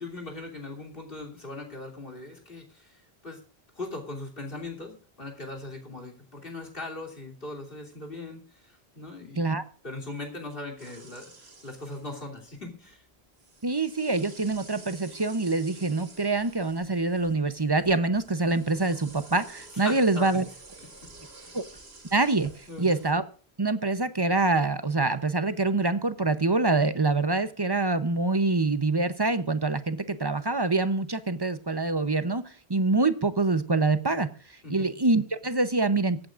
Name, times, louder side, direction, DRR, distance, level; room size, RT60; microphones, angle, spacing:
voice 1, 0.0-3.4 3.7-9.6 9.8-13.0 19.8-20.4 21.4-21.5 22.7-23.0 34.6-34.9, left 2 dB, 60° left, 3 dB, 3.3 m, -40 dB
sound 1, 10.8-12.5 13.3-23.1, right 3 dB, 80° right, 2.6 m, -50 dB
voice 2, 13.6-20.4 21.5-21.6 22.1-23.2 23.6-34.3 34.7-36.3, right 3 dB, 25° right, 12 dB, 0.7 m, -25 dB
23.0 x 8.9 x 2.5 m, 0.43 s
omnidirectional pair, 1.1 m